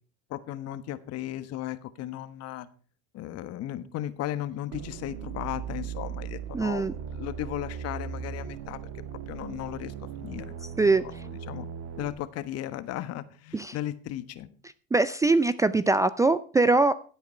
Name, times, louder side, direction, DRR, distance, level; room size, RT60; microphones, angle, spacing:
voice 1, 0.3-2.7 3.1-8.8 9.3-10.5 10.8-10.9 11.3-11.7 12.0-14.5, left 13 dB, 50° left, 13 dB, 1.3 m, -36 dB
sound 1, 4.7-12.1, right 8 dB, 50° right, 1.8 m, -38 dB
voice 2, 6.5-6.9 10.8-11.0 13.5-13.7 14.9-16.9, right 3 dB, 10° right, 15 dB, 0.4 m, -22 dB
15.5 x 8.3 x 4.4 m, 0.41 s
supercardioid pair, 110°, 32 cm